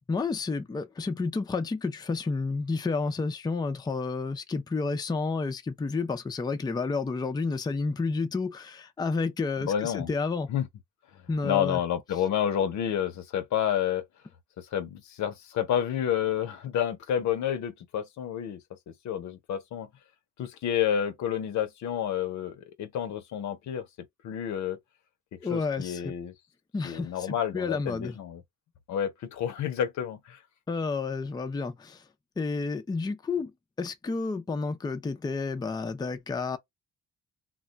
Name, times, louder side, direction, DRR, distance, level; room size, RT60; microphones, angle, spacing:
voice 1, 0.1-10.5 11.3-11.8 25.3-26.1 26.7-28.2 30.7-32.0 32.4-33.5 33.8-36.6, left 4 dB, 15° left, 0.4 m, -30 dB
voice 2, 9.6-10.1 10.5-10.7 11.4-14.0 14.6-18.6 19.0-19.9 20.4-23.9 24.2-24.8 25.5-26.3 26.8-28.4 28.9-30.4, left 9 dB, 70° left, 0.7 m, -29 dB
2.2 x 2.2 x 3.8 m
cardioid pair, 90°, 30 cm